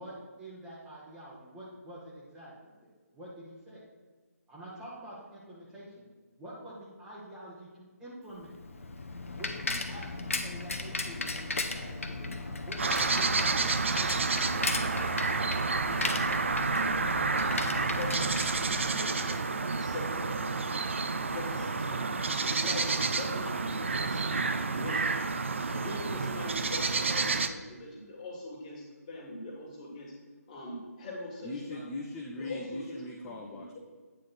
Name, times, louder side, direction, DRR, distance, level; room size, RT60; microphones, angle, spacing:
voice 1, 0.0-3.9 4.5-6.1 6.4-7.7 8.0-8.5 9.4-11.4 11.7-12.8 13.1-13.7 22.8-22.9, right 1 dB, 5° right, -7 dB, 0.9 m, -47 dB
Bicycle, 8.4-19.3, left 3 dB, 55° left, 0.8 m, -36 dB
sound 1, 12.8-27.5, right 4 dB, 50° right, 0.5 m, -30 dB
voice 2, 17.9-19.3 19.8-20.4 21.2-22.1 22.4-25.1 25.5-30.1 30.5-31.8 32.4-33.0 33.5-33.8, left 2 dB, 25° left, -3 dB, 1.8 m, -42 dB
voice 3, 31.4-33.8, left 2 dB, 10° left, -1 dB, 0.4 m, -40 dB
8.9 x 3.7 x 5.9 m, 1.4 s
figure-of-eight pair, 150°, 9 cm